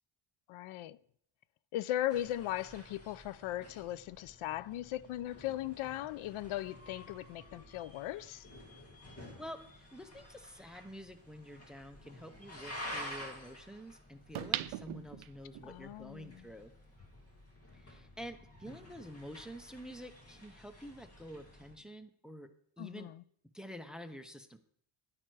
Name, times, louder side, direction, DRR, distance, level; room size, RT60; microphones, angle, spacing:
voice 1, 0.5-1.0 1.7-8.5 15.6-16.5 22.8-23.2, left 13 dB, 80° left, 0.5 m, -38 dB
sound 1, 2.1-21.8, left 1 dB, 30° left, 1.9 m, -51 dB
voice 2, 9.2-16.7 17.7-22.5 22.8-23.1 23.5-24.6, equal, ahead, 0.5 m, -48 dB
sound 2, 10.7-10.8 14.3-15.7 16.2-16.3, right 14 dB, 75° right, 0.6 m, -38 dB
10.5 x 8.7 x 4.6 m
cardioid pair, 155°, 50 cm